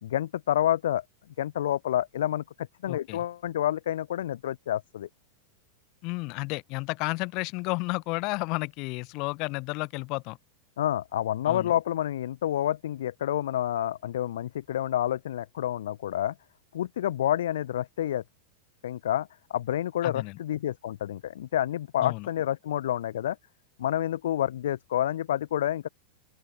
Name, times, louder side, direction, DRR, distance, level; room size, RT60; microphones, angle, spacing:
voice 1, 0.0-1.0 1.4-5.1 10.8-16.3 16.7-18.2 18.8-23.4 23.8-25.9, left 11 dB, 60° left, 1.4 m, -29 dB
voice 2, 2.9-3.2 6.0-10.4 11.5-11.7 20.0-20.4 22.0-22.3, left 27 dB, 40° left, 1.2 m, -32 dB
open air
figure-of-eight pair, 90°, 0 cm